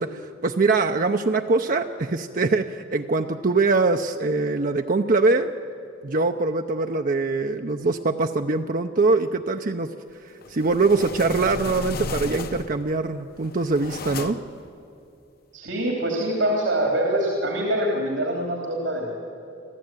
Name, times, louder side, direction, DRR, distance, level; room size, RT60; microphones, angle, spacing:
voice 1, 0.0-5.5 6.0-14.4, right 3 dB, 45° right, 5 dB, 0.6 m, -23 dB
sound 1, 10.4-12.9 13.4-14.6, left 3 dB, 50° left, 1.0 m, -34 dB
voice 2, 15.5-19.2, right 1 dB, 85° right, 0 dB, 3.1 m, -24 dB
25.5 x 15.0 x 9.0 m, 2.7 s
head